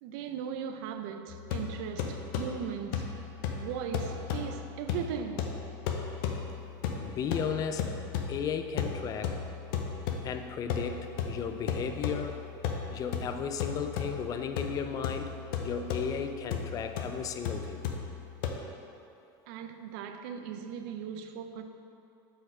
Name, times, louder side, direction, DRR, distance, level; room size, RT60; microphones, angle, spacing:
voice 1, 0.0-3.2 3.6-5.6 19.5-21.6, right 7 dB, 70° right, 0.4 m, -38 dB
sound 1, 1.3-18.5, left 6 dB, 75° left, 0.6 m, -36 dB
voice 2, 7.0-8.0 8.3-9.4 10.2-12.5 12.9-15.3 15.6-17.8, left 7 dB, 30° left, 0.4 m, -35 dB
4.8 x 4.2 x 4.9 m
supercardioid pair, 125°, 12 cm